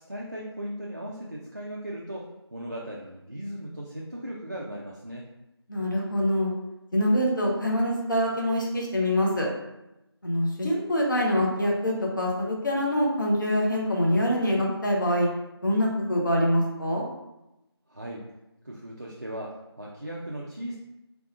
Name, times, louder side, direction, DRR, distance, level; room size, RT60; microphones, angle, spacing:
voice 1, 0.1-5.3 17.9-18.3 18.6-20.8, right 1 dB, 40° right, -4 dB, 0.4 m, -37 dB
voice 2, 5.7-6.5 6.9-9.5 10.2-15.3 15.6-17.0, equal, 45° left, -2 dB, 0.8 m, -25 dB
3.6 x 3.4 x 2.5 m, 0.92 s
figure-of-eight pair, 170°, 14 cm